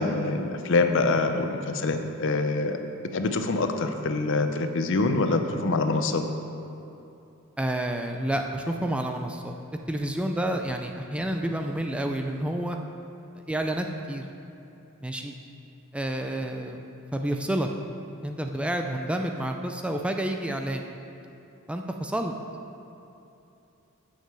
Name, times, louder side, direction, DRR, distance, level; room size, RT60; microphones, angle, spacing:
voice 1, 0.0-2.8 3.1-6.2, left 3 dB, 65° left, 7 dB, 0.6 m, -25 dB
voice 2, 7.6-9.6 9.9-12.8 13.5-14.3 15.0-15.3 15.9-16.8 17.1-17.7 18.2-20.8 21.7-22.3, right 1 dB, 5° right, 4 dB, 0.4 m, -29 dB
6.6 x 6.2 x 7.6 m, 2.8 s
head